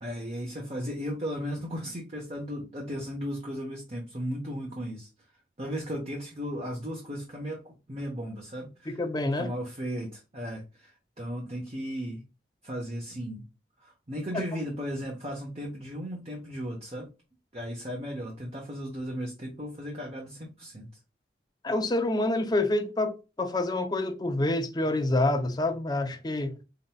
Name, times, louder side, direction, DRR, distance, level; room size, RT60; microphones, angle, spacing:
voice 1, 0.0-5.1 5.6-9.0 9.4-12.2 12.6-13.4 13.8-17.1 17.5-20.9, equal, 35° right, 1.0 m, -36 dB
voice 2, 8.9-9.5 14.3-14.4 21.6-26.6, left 2 dB, 25° left, 0.6 m, -27 dB
4.4 x 3.9 x 2.2 m
head